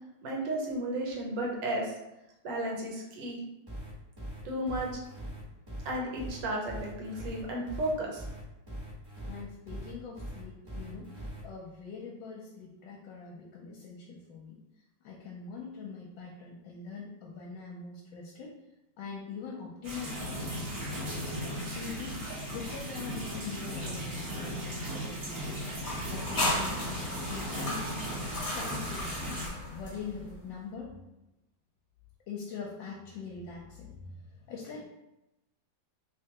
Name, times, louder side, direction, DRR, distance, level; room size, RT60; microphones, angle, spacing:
voice 1, 0.2-1.9 2.4-3.4 4.4-4.9 5.8-8.2, right 1 dB, 70° right, -1 dB, 1.5 m, -33 dB
sound 1, 3.7-11.4, right 1 dB, 15° right, 1.0 m, -41 dB
voice 2, 9.3-14.6 15.0-18.6 19.0-20.7 21.2-22.2 22.5-25.5 26.1-27.9 28.5-31.0 32.3-34.9, left 5 dB, 80° left, -2 dB, 1.3 m, -43 dB
sound 2, 19.8-29.5, equal, 40° right, 1.0 m, -37 dB
sound 3, 25.8-30.3, left 1 dB, 45° left, 1.1 m, -35 dB
3.4 x 3.3 x 2.9 m, 0.95 s
omnidirectional pair, 2.1 m